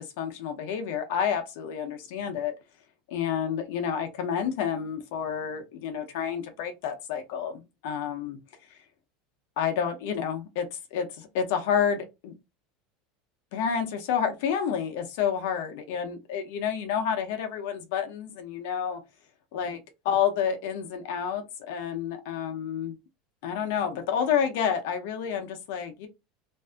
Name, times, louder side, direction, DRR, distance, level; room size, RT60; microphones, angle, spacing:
voice 1, 0.0-2.5 3.1-8.4 9.6-12.3 13.5-19.0 19.5-19.8 20.0-23.0 23.4-26.1, left 8 dB, 65° left, 0.6 m, -29 dB
2.6 x 2.5 x 2.3 m
supercardioid pair, 175°, 0 cm